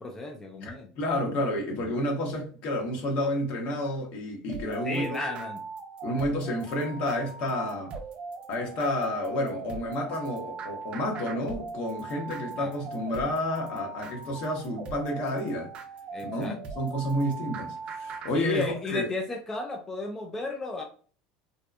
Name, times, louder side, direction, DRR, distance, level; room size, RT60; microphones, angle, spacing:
voice 1, 0.0-0.9 4.8-5.6 12.6-12.9 16.1-16.6 18.3-20.8, left 3 dB, 15° left, 0.4 m, -33 dB
voice 2, 0.6-5.0 6.0-7.9 8.5-15.7 16.2-19.1, left 1 dB, 60° left, 0.9 m, -30 dB
sound 1, 4.5-18.3, right 4 dB, 40° right, 0.5 m, -40 dB
2.7 x 2.2 x 2.4 m
supercardioid pair, 100°, 3 cm